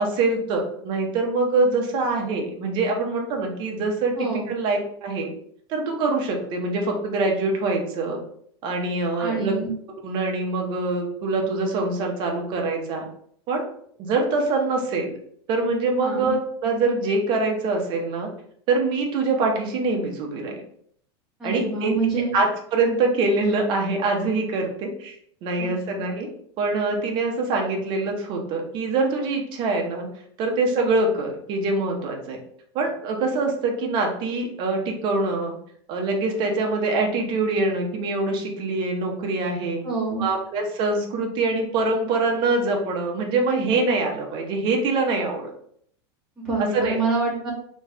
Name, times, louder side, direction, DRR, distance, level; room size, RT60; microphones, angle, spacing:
voice 1, 0.0-5.3 5.7-8.2 8.6-9.5 10.0-13.1 13.5-13.6 14.0-15.1 15.5-18.3 18.7-20.6 21.4-21.9 22.3-25.2 25.4-26.3 26.6-30.1 30.4-32.4 32.7-35.5 35.9-39.8 40.2-45.5 46.6-47.0, right 3 dB, 35° right, 1 dB, 0.8 m, -24 dB
voice 2, 4.2-4.5 9.2-9.7 16.0-16.3 21.4-22.3 25.6-25.8 39.8-40.2 46.4-47.5, right 4 dB, 5° right, -8 dB, 1.3 m, -26 dB
3.6 x 3.1 x 3.3 m, 0.64 s
supercardioid pair, 165°, 14 cm